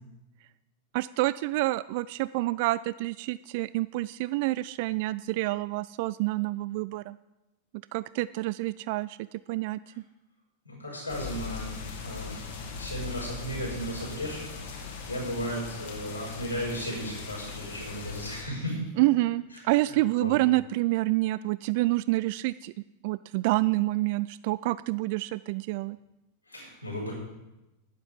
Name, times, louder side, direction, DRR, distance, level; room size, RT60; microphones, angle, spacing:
voice 1, 0.9-7.2 7.9-10.0 19.0-22.7 23.0-26.0, right 19 dB, 50° right, 17 dB, 0.3 m, -28 dB
voice 2, 10.6-11.7 12.0-12.4 12.8-14.5 14.8-18.8 20.2-20.3 26.5-27.1, equal, 85° left, -3 dB, 5.8 m, -35 dB
sound 1, 11.1-18.4, left 5 dB, 55° left, 2.6 m, -39 dB
12.0 x 10.5 x 5.2 m, 0.98 s
figure-of-eight pair, 90°, 0 cm